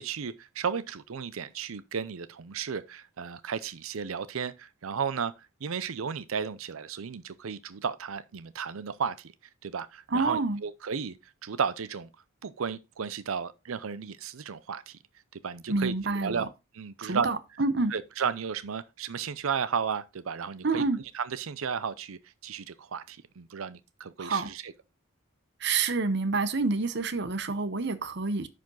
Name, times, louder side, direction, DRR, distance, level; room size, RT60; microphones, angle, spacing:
voice 1, 0.0-9.3 9.6-12.1 12.4-15.0 15.3-16.5 16.7-17.3 17.9-20.9 21.1-24.7, right 6 dB, 85° right, 0.6 m, -34 dB
voice 2, 10.1-10.6 15.7-16.4 17.0-17.9 20.6-21.0 24.2-24.5 25.6-28.5, right 3 dB, 55° right, 0.8 m, -28 dB
10.5 x 5.1 x 3.9 m
head